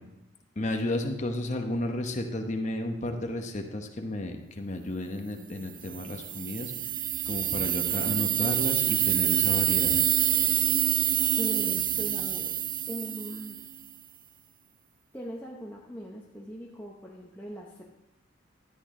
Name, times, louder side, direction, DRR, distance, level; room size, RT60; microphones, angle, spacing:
voice 1, 0.6-6.7 7.2-10.0, left 1 dB, 35° left, 4 dB, 0.9 m, -32 dB
sound 1, 5.9-13.8, right 11 dB, 40° right, 0.4 m, -27 dB
voice 2, 11.4-12.5 12.9-13.6 15.1-17.8, equal, 10° left, -4 dB, 0.8 m, -40 dB
12.5 x 8.5 x 3.7 m, 0.93 s
head